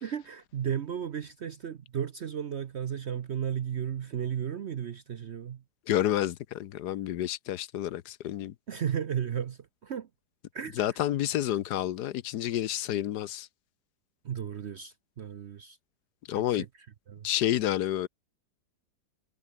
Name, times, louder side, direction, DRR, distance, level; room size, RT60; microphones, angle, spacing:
voice 1, 0.0-5.6 8.7-10.1 10.5-10.9 14.2-15.8 16.5-16.7 17.1-17.3, right 8 dB, 55° right, 0.8 m, -34 dB
voice 2, 5.9-8.5 10.8-13.5 16.3-16.6 17.2-18.1, left 12 dB, 75° left, 1.3 m, -29 dB
omnidirectional pair, 1.8 m